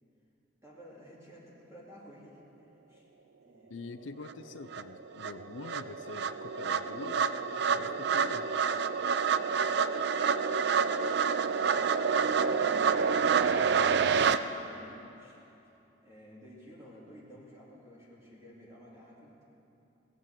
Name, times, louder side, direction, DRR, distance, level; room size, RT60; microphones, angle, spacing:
voice 1, 0.6-3.0 3.4-3.7 7.4-8.3 9.0-9.9 10.7-13.0 13.3-15.4 16.0-19.4, equal, 15° right, -7 dB, 2.5 m, -53 dB
voice 2, 3.7-7.3 7.7-8.5, left 4 dB, 75° left, 10 dB, 0.5 m, -45 dB
sound 1, 4.3-4.4 4.7-14.4, right 6 dB, 60° right, 0.4 m, -28 dB
18.5 x 7.5 x 8.1 m, 2.9 s
head